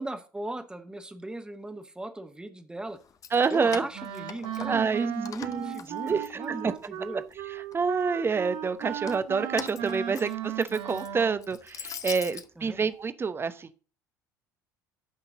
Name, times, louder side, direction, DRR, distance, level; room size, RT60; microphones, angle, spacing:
voice 1, 0.0-3.0 3.5-7.2 12.6-12.8, right 1 dB, 10° right, 7 dB, 1.6 m, -38 dB
Keys jangling, 3.0-5.0 5.3-6.9 7.3-8.0 8.8-12.5, left 7 dB, 35° left, 0.9 m, -42 dB
voice 2, 3.3-3.8 4.6-5.1 5.4-5.7 6.1-6.2 6.6-6.7 7.7-13.8, right 5 dB, 25° right, 13 dB, 0.9 m, -27 dB
Wind instrument woodwind instrument, 3.9-11.5, right 10 dB, 55° right, 1.3 m, -36 dB
14.0 x 5.8 x 3.9 m, 0.37 s
figure-of-eight pair, 60°, 9 cm